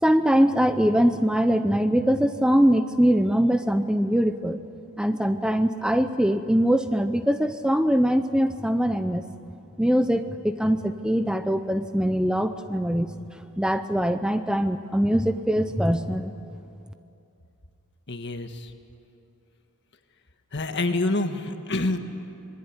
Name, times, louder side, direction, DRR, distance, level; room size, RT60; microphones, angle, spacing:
voice 1, 0.0-4.6 5.0-9.2 9.8-13.1 13.6-16.3, equal, 5° right, 9 dB, 0.6 m, -22 dB
voice 2, 18.1-18.5 20.5-22.0, left 2 dB, 55° left, 7 dB, 1.6 m, -26 dB
26.0 x 20.5 x 9.7 m, 2.6 s
head